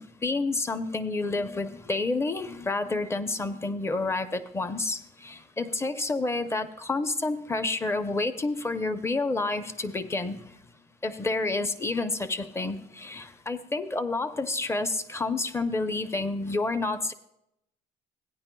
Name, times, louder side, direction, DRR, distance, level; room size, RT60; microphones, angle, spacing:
voice 1, 0.0-10.4 11.0-17.1, left 3 dB, 15° left, 11 dB, 0.6 m, -29 dB
16.5 x 9.6 x 2.3 m, 0.84 s
cardioid pair, 110°, 17 cm